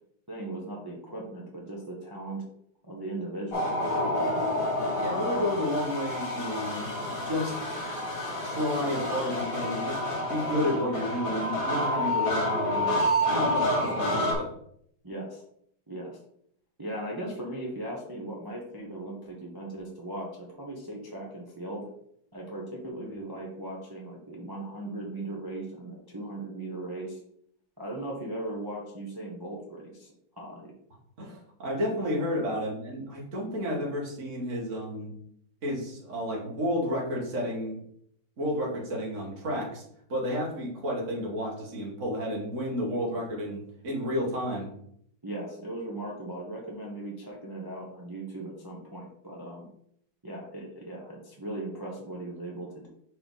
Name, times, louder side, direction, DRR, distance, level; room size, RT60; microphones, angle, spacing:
voice 1, 0.3-2.4 2.8-3.8 15.0-15.4 15.9-16.2 16.8-21.9 22.3-27.2 27.8-30.7 45.2-49.7 50.2-52.9, right 1 dB, 20° right, -2 dB, 0.7 m, -38 dB
sound 1, 3.5-14.3, left 1 dB, 50° left, 1.9 m, -29 dB
voice 2, 5.0-7.6 8.4-13.0 13.3-14.5 31.2-35.1 35.6-37.8 38.4-39.8 40.1-44.7, equal, 40° right, -2 dB, 1.9 m, -31 dB
5.3 x 4.5 x 4.0 m, 0.69 s
omnidirectional pair, 2.1 m